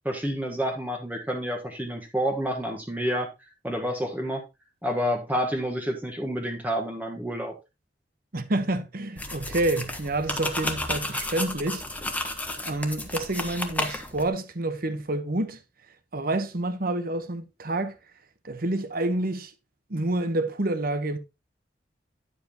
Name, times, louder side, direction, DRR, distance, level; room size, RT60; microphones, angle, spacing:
voice 1, 0.0-4.4 4.8-7.5, equal, 10° right, 1.3 m, -29 dB
voice 2, 8.3-11.8 12.6-15.6 16.1-17.9 18.4-19.5 19.9-21.2, right 2 dB, 55° right, 1.1 m, -28 dB
sound 1, 9.2-14.3, left 1 dB, 10° left, 1.2 m, -32 dB
10.5 x 7.6 x 2.9 m
head